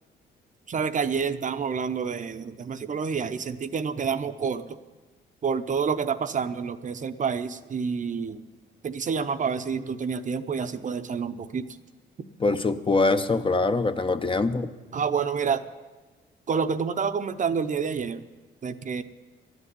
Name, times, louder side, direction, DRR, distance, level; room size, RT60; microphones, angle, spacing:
voice 1, 0.7-4.8 5.4-8.4 8.8-11.7 14.9-15.6 16.5-18.2 18.6-19.0, right 6 dB, 40° right, 9 dB, 0.7 m, -28 dB
voice 2, 12.4-14.7, left 3 dB, 25° left, 9 dB, 0.7 m, -23 dB
12.5 x 8.0 x 9.8 m, 1.3 s
cardioid pair, 90°, 20 cm